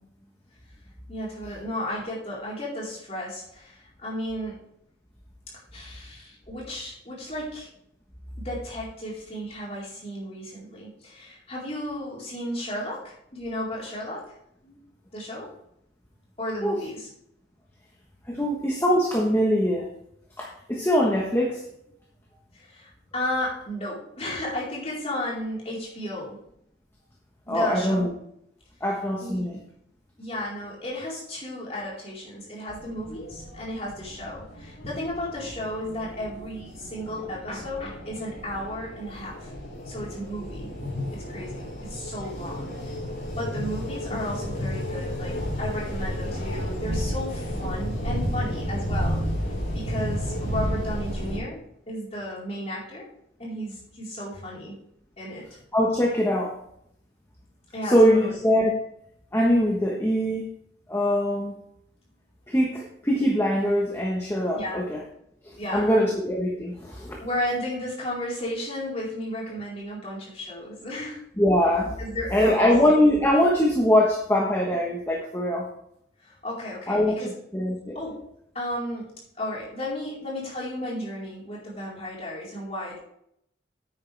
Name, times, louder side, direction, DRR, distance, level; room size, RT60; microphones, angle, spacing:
voice 1, 1.1-4.6 5.7-7.7 8.4-14.2 14.6-14.8 15.1-15.5 16.4-17.1 22.5-26.4 27.5-28.1 29.2-29.4 30.2-39.5 39.9-40.7 41.1-42.7 43.4-49.2 49.7-51.6 51.9-53.0 53.4-54.8 55.2-55.4 57.7-58.3 64.5-64.8 65.6-66.2 67.2-71.2 72.0-72.8 76.2-77.3 77.9-78.2 78.5-79.0 79.4-83.0, left 1 dB, 35° left, -6 dB, 4.3 m, -33 dB
voice 2, 18.3-19.9 20.4-21.6 27.5-28.1 28.8-29.6 55.7-56.6 57.8-58.8 59.3-60.4 60.9-61.6 62.5-65.0 65.4-67.2 71.4-71.9 72.3-75.7 76.9-78.0, equal, 15° left, -1 dB, 1.2 m, -22 dB
sound 1, 32.7-51.4, equal, 50° left, 4.3 m, -32 dB
10.0 x 8.8 x 3.4 m, 0.73 s
head